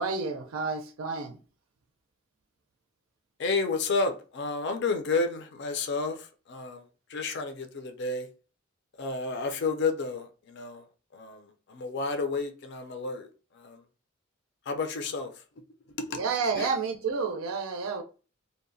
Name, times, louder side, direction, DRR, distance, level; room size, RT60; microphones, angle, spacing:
voice 1, 0.0-1.4 16.1-18.0, right 4 dB, 80° right, 0.4 m, -30 dB
voice 2, 3.4-6.2 6.5-6.8 7.1-8.3 9.0-10.8 11.1-11.4 11.7-13.3 13.6-13.8 14.7-15.3 16.0-16.2 16.6-16.7, left 3 dB, 55° left, 0.4 m, -30 dB
2.7 x 2.1 x 2.5 m
head